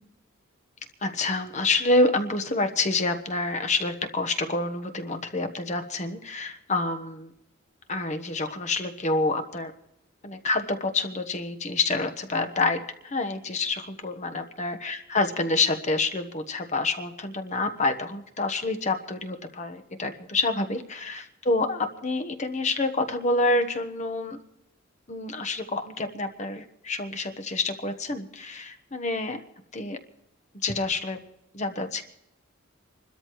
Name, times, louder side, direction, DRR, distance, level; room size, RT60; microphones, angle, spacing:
voice 1, 1.0-7.3 7.9-9.7 10.2-24.4 25.1-29.4 29.7-30.0 30.6-31.2 31.5-32.0, left 2 dB, 35° left, 7 dB, 1.0 m, -27 dB
27.0 x 13.0 x 3.1 m, 0.83 s
head